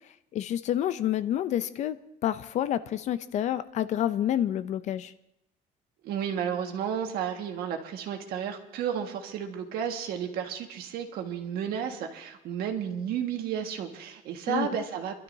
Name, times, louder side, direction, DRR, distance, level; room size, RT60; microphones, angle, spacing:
voice 1, 0.3-2.0 2.2-5.1 14.5-14.7, left 11 dB, 45° left, 14 dB, 0.5 m, -28 dB
voice 2, 6.0-15.2, right 8 dB, 65° right, 4 dB, 1.6 m, -32 dB
29.5 x 12.5 x 2.7 m, 0.80 s
cardioid pair, 170°, 17 cm